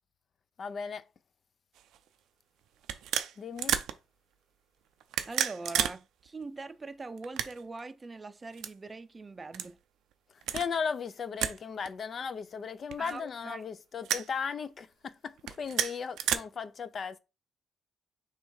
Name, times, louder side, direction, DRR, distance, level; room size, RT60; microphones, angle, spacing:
voice 1, 0.6-1.0 3.4-3.8 10.5-17.2, left 6 dB, 50° left, 0.4 m, -36 dB
sound 1, 1.8-2.0 2.8-3.9 5.0-6.0 6.3-6.4 7.2-7.8 8.5-8.7 9.5-9.7 10.4-10.7 11.4-11.6 11.8-11.9 12.9-13.4 14.0-14.3 15.4-16.4, right 10 dB, 85° right, 0.4 m, -31 dB
voice 2, 5.3-9.8 13.0-13.6, right 3 dB, 25° right, 0.5 m, -42 dB
3.3 x 3.2 x 4.7 m
cardioid pair, 90°, 0 cm